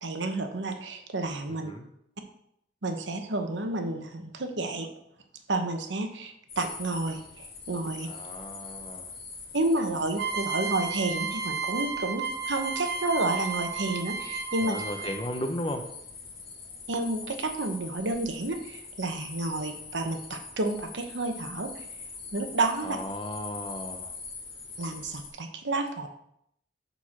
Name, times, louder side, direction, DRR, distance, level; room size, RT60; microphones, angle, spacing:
voice 1, 0.0-1.7 2.8-4.9 5.5-7.2 7.7-8.1 9.5-14.8 16.9-21.7 22.3-23.0 24.8-26.1, right 2 dB, 80° right, 5 dB, 1.0 m, -30 dB
voice 2, 1.5-1.8 8.0-9.1 14.6-15.9 22.8-24.1, left 1 dB, 25° left, 5 dB, 0.7 m, -35 dB
sound 1, 6.5-25.3, left 4 dB, 55° left, 1.9 m, -43 dB
sound 2, 10.2-15.4, right 5 dB, 55° right, 0.6 m, -33 dB
6.5 x 4.6 x 5.8 m, 0.74 s
head